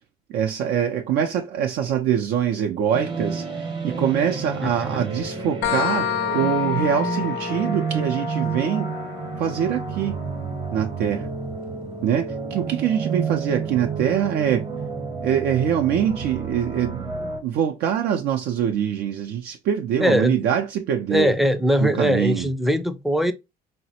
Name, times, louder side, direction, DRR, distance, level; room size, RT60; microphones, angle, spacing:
voice 1, 0.3-8.9 9.4-10.2 10.7-11.3 12.0-14.7 15.2-17.1 17.4-21.3 21.8-22.5, right 9 dB, 80° right, 0.4 m, -24 dB
sound 1, 2.9-17.4, right 4 dB, 30° right, 0.7 m, -30 dB
sound 2, 5.6-13.0, left 10 dB, 80° left, 0.5 m, -31 dB
voice 2, 20.0-20.4 21.1-23.3, equal, ahead, 0.4 m, -21 dB
4.0 x 2.0 x 2.7 m
cardioid pair, 110°, 17 cm